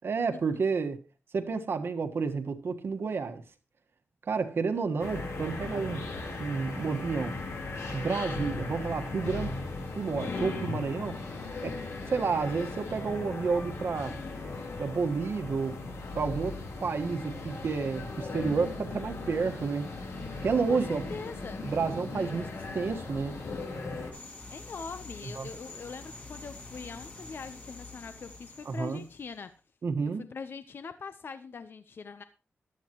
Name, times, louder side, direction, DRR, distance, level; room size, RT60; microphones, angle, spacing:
voice 1, 0.0-1.0 1.3-3.4 4.3-6.1 6.4-7.4 7.9-9.6 9.9-11.2 11.6-11.8 12.1-14.1 14.8-15.8 16.1-19.9 20.4-21.0 21.6-23.4 25.4-25.5 28.6-29.0 29.8-30.2, right 5 dB, 60° right, 1.4 m, -30 dB
sound 1, 5.0-24.1, left 3 dB, 80° left, 3.8 m, -37 dB
voice 2, 20.7-21.7 24.5-29.5 30.0-32.2, left 5 dB, 55° left, 0.8 m, -42 dB
sound 2, 24.1-29.4, left 3 dB, 35° left, 2.1 m, -46 dB
15.5 x 12.0 x 3.0 m
wide cardioid pair, 150°, 5 cm